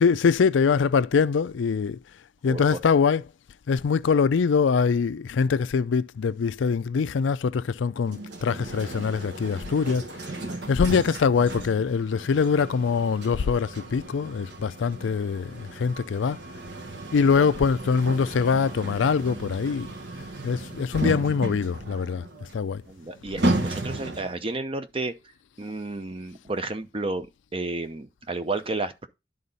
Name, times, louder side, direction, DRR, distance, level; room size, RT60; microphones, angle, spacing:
voice 1, 0.0-2.0 2.4-3.2 3.7-10.0 10.7-16.4 17.1-19.9 20.4-22.3 22.5-22.8, left 5 dB, 85° left, 0.4 m, -23 dB
voice 2, 2.5-2.8 17.4-17.5 22.9-25.1 25.6-27.3 27.5-29.1, right 2 dB, 30° right, 0.7 m, -32 dB
sound 1, 8.1-24.5, right 1 dB, 65° right, 1.3 m, -34 dB
11.0 x 3.9 x 4.0 m
head